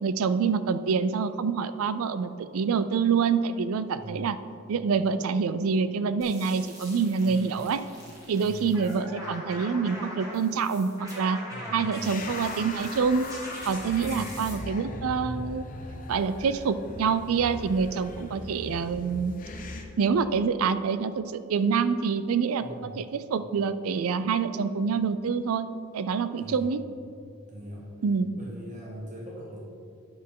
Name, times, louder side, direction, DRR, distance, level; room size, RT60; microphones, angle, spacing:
voice 1, 0.0-4.4 4.7-7.8 8.3-11.4 11.7-13.3 13.7-15.7 16.1-19.3 20.0-22.6 23.0-25.7 25.9-26.8 28.0-28.3, right 5 dB, 85° right, 13 dB, 0.4 m, -26 dB
voice 2, 3.9-4.3 7.2-7.6 8.4-8.8 11.5-12.1 14.0-14.5 22.6-23.0 26.4-26.7 27.5-27.9 28.3-29.6, equal, 35° right, -4 dB, 1.3 m, -41 dB
sound 1, 6.2-14.5, equal, 15° right, 1.4 m, -42 dB
sound 2, 12.0-19.8, left 2 dB, 40° left, 0.7 m, -39 dB
9.5 x 6.4 x 3.7 m, 2.4 s
head